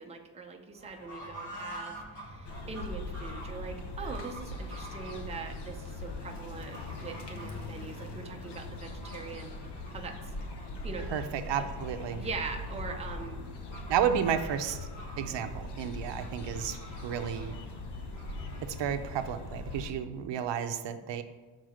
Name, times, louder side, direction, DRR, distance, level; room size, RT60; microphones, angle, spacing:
voice 1, 0.0-9.5 9.9-10.2 10.8-11.1 11.6-11.7 12.2-13.4, right 4 dB, 15° right, 3 dB, 0.5 m, -42 dB
Fowl / Bird, 0.7-18.8, equal, 45° left, 2.3 m, -49 dB
sound 1, 2.4-19.9, left 2 dB, 70° left, 1.0 m, -41 dB
voice 2, 11.1-12.2 13.9-14.8 15.2-16.8 17.0-17.6 18.8-21.2, right 8 dB, 85° right, 8 dB, 0.7 m, -32 dB
6.5 x 4.0 x 6.2 m, 1.3 s
wide cardioid pair, 175°, 42 cm